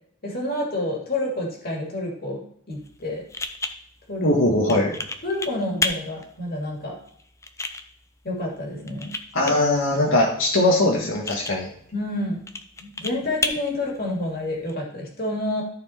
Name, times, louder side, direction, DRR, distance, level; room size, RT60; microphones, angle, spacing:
voice 1, 0.2-2.4 2.7-3.2 4.1-4.3 5.2-7.0 8.2-9.1 9.4-9.5 11.9-12.4 12.8-15.6, left 1 dB, 50° left, -1 dB, 2.5 m, -28 dB
sound 1, 2.7-14.7, left 3 dB, 15° left, 0.6 m, -34 dB
voice 2, 4.2-4.9 9.3-11.7, left 1 dB, 75° left, -2 dB, 1.6 m, -20 dB
13.0 x 4.5 x 4.4 m, 0.67 s
head